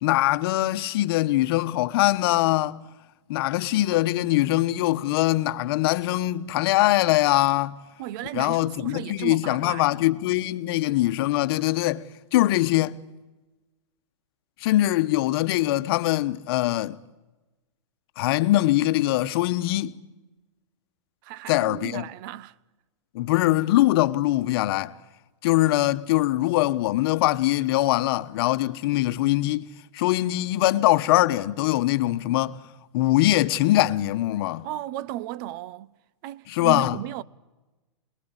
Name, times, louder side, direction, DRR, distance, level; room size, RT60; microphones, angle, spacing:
voice 1, 0.0-2.8 3.3-7.8 8.3-12.0 12.3-13.0 14.6-17.0 18.2-20.0 21.5-22.1 23.1-24.9 25.4-29.7 29.9-32.6 32.9-34.7 36.5-37.0, left 16 dB, 50° left, 1.2 m, -22 dB
voice 2, 8.0-10.0 21.2-22.5 34.6-35.9 36.2-37.2, right 14 dB, 45° right, 0.8 m, -35 dB
27.0 x 21.0 x 9.9 m
hypercardioid pair, 145°, 16 cm